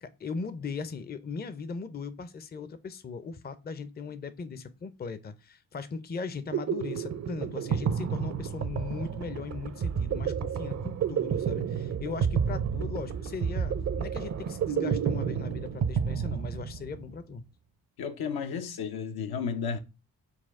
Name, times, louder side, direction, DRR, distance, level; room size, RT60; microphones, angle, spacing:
voice 1, 0.0-17.4, left 5 dB, 25° left, 0.5 m, -38 dB
sound 1, 6.2-17.0, right 7 dB, 45° right, 0.6 m, -30 dB
voice 2, 18.0-19.8, left 6 dB, 70° left, 0.7 m, -33 dB
4.2 x 2.3 x 3.6 m
supercardioid pair, 50°, 38 cm